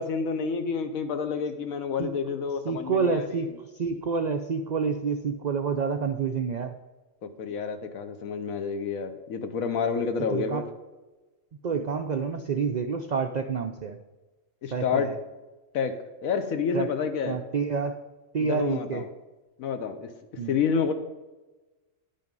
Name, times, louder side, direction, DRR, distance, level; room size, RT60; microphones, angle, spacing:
voice 1, 0.0-3.6 7.2-10.6 14.6-15.1 15.7-15.9 16.2-17.4 18.4-19.1 19.6-20.1 20.5-20.9, left 6 dB, 90° left, 8 dB, 1.3 m, -29 dB
voice 2, 2.0-2.4 2.6-6.8 10.2-10.7 11.6-14.0 14.7-15.2 16.7-16.9 17.3-18.0 18.3-19.1 20.4-20.6, right 5 dB, 75° right, 6 dB, 0.4 m, -28 dB
10.5 x 5.6 x 5.3 m, 1.2 s
omnidirectional pair, 1.4 m